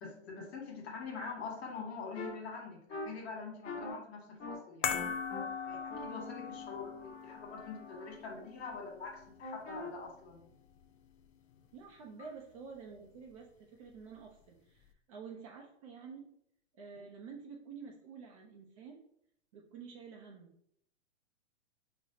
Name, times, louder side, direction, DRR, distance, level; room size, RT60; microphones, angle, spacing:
voice 1, 0.0-5.0 5.6-10.4 16.9-17.0, left 5 dB, 60° left, 1 dB, 1.3 m, -45 dB
sound 1, 2.1-2.3 2.9-3.1 3.6-3.9 4.4-4.6 4.9-5.4 5.9-8.1 9.4-9.9, left 2 dB, 20° left, 1.2 m, -44 dB
sound 2, 4.8-11.2 11.5-11.7, left 7 dB, 90° left, 0.5 m, -41 dB
voice 2, 11.7-16.3 16.7-19.0 19.5-20.5, right 5 dB, 30° right, 0 dB, 0.4 m, -49 dB
4.7 x 2.0 x 2.7 m, 0.69 s
hypercardioid pair, 135°, 36 cm